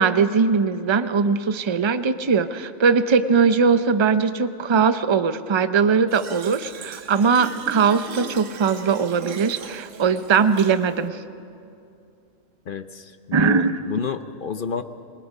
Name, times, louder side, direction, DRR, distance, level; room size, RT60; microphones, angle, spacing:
voice 1, 0.0-11.2 13.3-13.8, right 5 dB, 35° right, 11 dB, 0.5 m, -20 dB
Fill (with liquid), 6.1-11.1, right 6 dB, 70° right, 1.2 m, -38 dB
voice 2, 12.7-14.8, left 6 dB, 50° left, 10 dB, 0.7 m, -30 dB
28.5 x 19.5 x 5.4 m, 2.5 s
omnidirectional pair, 1.4 m